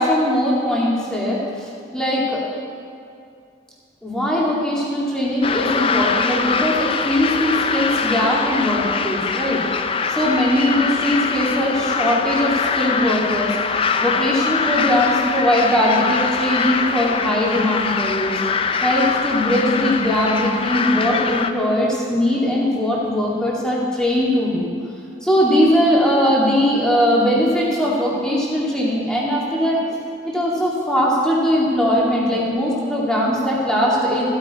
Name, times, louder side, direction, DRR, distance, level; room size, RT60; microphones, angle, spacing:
voice 1, 0.0-2.4 4.0-9.6 10.2-18.4 18.8-24.7 25.2-29.8 30.3-34.3, equal, 5° left, -5 dB, 2.1 m, -20 dB
sound 1, 5.4-21.5, left 5 dB, 30° left, 0.4 m, -23 dB
15.0 x 8.9 x 4.2 m, 2.3 s
head